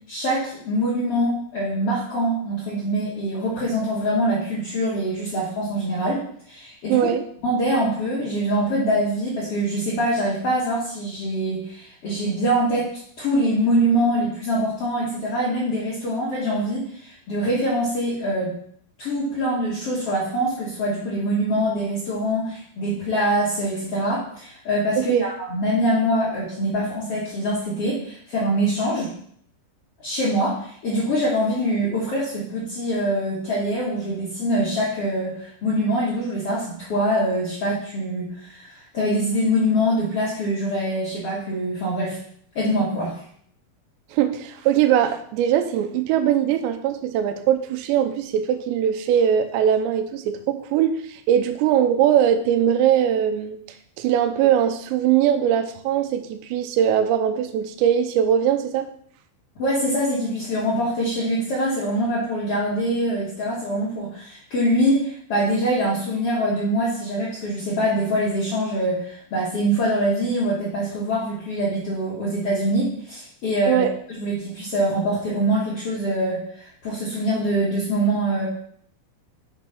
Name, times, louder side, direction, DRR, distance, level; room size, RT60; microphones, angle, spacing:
voice 1, 0.1-7.1 7.4-12.9 13.2-18.5 19.0-29.1 30.0-42.2 42.5-43.2 59.6-73.9 74.2-78.5, equal, 60° left, -7 dB, 1.5 m, -24 dB
voice 2, 6.9-7.2 25.0-25.3 44.1-53.6 54.0-58.9 73.7-73.9, right 9 dB, 80° right, 7 dB, 2.7 m, -21 dB
6.7 x 6.1 x 5.8 m, 0.62 s
omnidirectional pair, 5.8 m